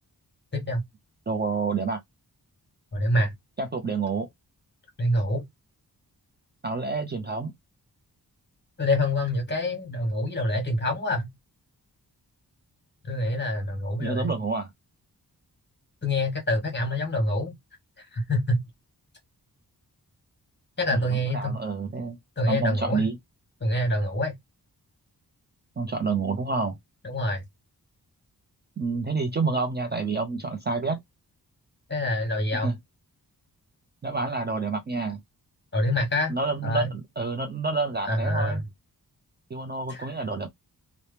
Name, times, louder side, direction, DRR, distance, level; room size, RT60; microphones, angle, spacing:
voice 1, 1.3-2.0 3.6-4.3 6.6-7.5 14.0-14.7 21.1-22.2 22.5-23.2 25.8-26.8 28.8-31.0 32.6-32.8 34.0-35.2 36.3-38.6 39.5-40.5, right 4 dB, 25° right, 0.4 m, -28 dB
voice 2, 2.9-3.3 5.0-5.4 8.8-11.3 13.0-14.3 16.0-17.5 18.0-18.6 20.8-21.6 22.4-23.0 23.6-24.3 27.0-27.4 31.9-32.7 35.7-36.3 36.6-36.9 38.0-38.6 39.9-40.1, left 1 dB, 30° left, 1.2 m, -26 dB
2.8 x 2.0 x 3.2 m
wide cardioid pair, 125°, 38 cm